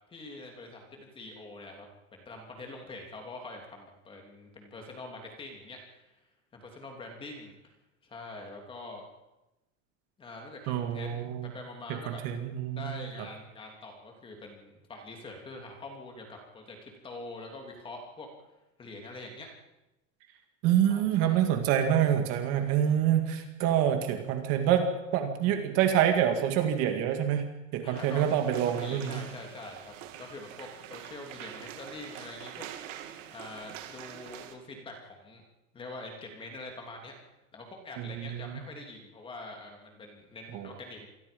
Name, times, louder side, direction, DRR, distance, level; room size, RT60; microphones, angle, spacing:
voice 1, 0.1-1.9 2.1-6.1 6.5-7.7 8.0-9.0 10.2-12.2 12.7-18.3 18.8-19.5 20.9-21.5 27.8-28.2 28.7-32.7 33.3-35.4 35.7-37.1 37.5-41.1, left 2 dB, 15° left, 2 dB, 3.2 m, -45 dB
voice 2, 10.7-11.5 12.1-13.0 20.6-29.2 38.0-38.6 40.5-40.7, right 10 dB, 40° right, 5 dB, 2.2 m, -27 dB
sound 1, 27.9-34.6, right 11 dB, 75° right, 2.8 m, -45 dB
27.5 x 20.5 x 5.4 m, 0.98 s
supercardioid pair, 180°, 38 cm